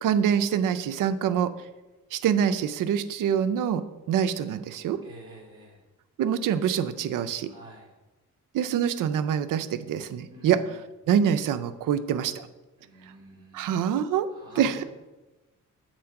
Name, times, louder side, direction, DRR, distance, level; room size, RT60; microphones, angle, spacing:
voice 1, 0.0-1.5 2.1-5.0 6.2-7.5 8.5-10.6 11.1-12.5 13.5-14.3 14.6-14.8, right 8 dB, 80° right, 11 dB, 0.6 m, -25 dB
voice 2, 5.0-5.8 7.5-7.9 10.3-10.8 12.8-13.7 14.3-14.8, equal, 15° right, -3 dB, 2.3 m, -47 dB
7.6 x 4.4 x 5.8 m, 1.1 s
cardioid pair, 145°, 31 cm